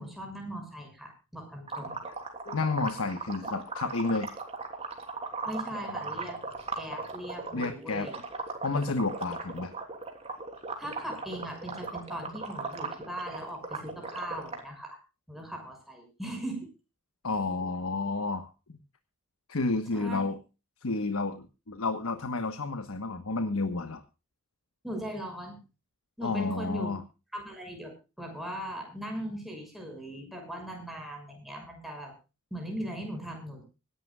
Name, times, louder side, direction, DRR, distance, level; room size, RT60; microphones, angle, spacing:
voice 1, 0.0-2.0 2.9-3.1 5.4-6.4 6.7-8.2 10.8-15.0 15.3-16.7 19.9-20.2 24.8-25.6 26.2-26.9 27.3-27.9 28.2-32.1 32.5-33.6, equal, ahead, 1 dB, 6.5 m, -39 dB
sound 1, 1.7-7.7 8.0-14.6, right 4 dB, 30° right, 3.2 m, -38 dB
voice 2, 2.4-4.3 7.5-8.1 8.6-9.7 17.2-18.5 19.5-20.4 20.8-24.0 26.2-27.0, left 3 dB, 75° left, 9 dB, 1.3 m, -30 dB
25.0 x 11.5 x 2.4 m, 0.31 s
head